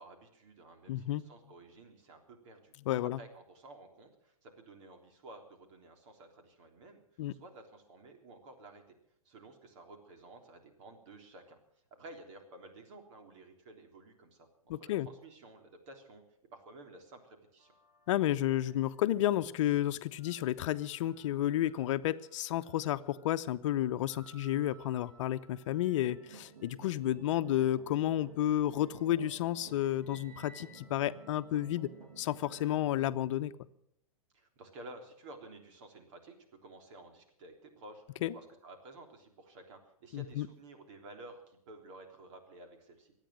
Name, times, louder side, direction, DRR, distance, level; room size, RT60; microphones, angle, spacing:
voice 1, 0.0-2.7 3.0-9.0 9.3-11.6 11.9-14.5 14.8-16.2 16.5-17.7 34.3-36.4 36.6-43.1, right 2 dB, 55° right, 5 dB, 3.5 m, -53 dB
voice 2, 0.9-1.2 2.9-3.2 7.2-7.3 14.7-15.1 18.1-31.9 32.2-33.5 38.2-38.3 40.1-40.5, left 13 dB, 55° left, 11 dB, 0.9 m, -31 dB
sound 1, 17.6-19.5 20.0-32.8, right 2 dB, 20° right, 2.7 m, -62 dB
sound 2, 25.9-33.3, right 4 dB, 80° right, 3.2 m, -54 dB
24.5 x 9.2 x 6.4 m, 0.72 s
hypercardioid pair, 115°, 18 cm